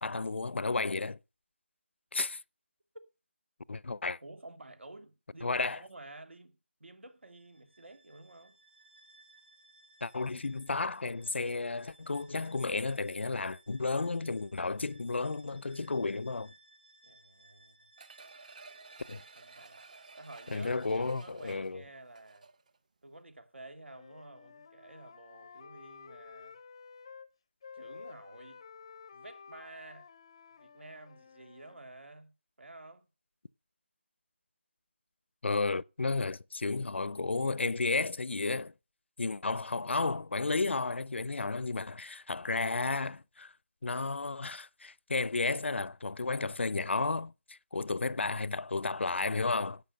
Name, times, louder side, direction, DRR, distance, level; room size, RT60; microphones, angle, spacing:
voice 1, 0.0-1.2 2.1-2.4 3.7-4.2 5.4-5.8 10.0-16.5 19.1-19.2 20.5-21.8 35.4-38.7 39.2-43.5 43.8-49.8, left 3 dB, 80° left, 0.5 m, -32 dB
voice 2, 4.2-8.6 17.0-17.8 19.1-19.8 20.2-22.5 23.0-26.6 27.7-28.6 29.1-30.1 30.6-33.1, right 2 dB, 85° right, 2.3 m, -51 dB
Bowed string instrument, 7.2-21.1, right 2 dB, 60° right, 2.0 m, -62 dB
sound 1, 18.0-22.8 23.2-23.3, right 4 dB, 40° right, 1.0 m, -53 dB
Wind instrument woodwind instrument, 23.8-27.3 27.6-31.8, left 6 dB, 25° left, 0.5 m, -52 dB
11.5 x 8.1 x 5.5 m
figure-of-eight pair, 170°, 6 cm